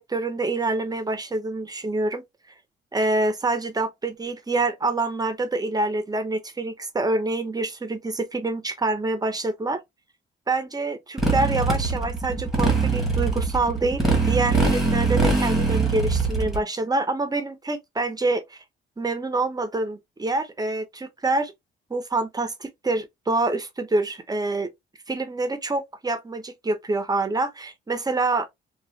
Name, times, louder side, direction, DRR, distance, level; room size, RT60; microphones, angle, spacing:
voice 1, 0.0-2.2 2.9-9.8 10.5-18.6 19.0-21.5 21.9-24.7 25.1-28.5, right 2 dB, 20° right, 0.8 m, -26 dB
Motorcycle, 11.2-16.6, right 3 dB, ahead, 1.4 m, -22 dB
3.0 x 2.5 x 2.6 m
cardioid pair, 90°, 20 cm